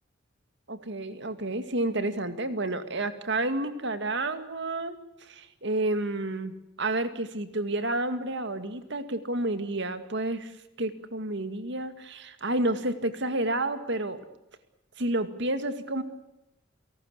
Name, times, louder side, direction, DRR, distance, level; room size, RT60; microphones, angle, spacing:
voice 1, 0.7-10.5 10.8-14.2 15.0-16.0, right 2 dB, 60° right, 10 dB, 2.2 m, -30 dB
29.0 x 18.5 x 8.3 m, 0.88 s
head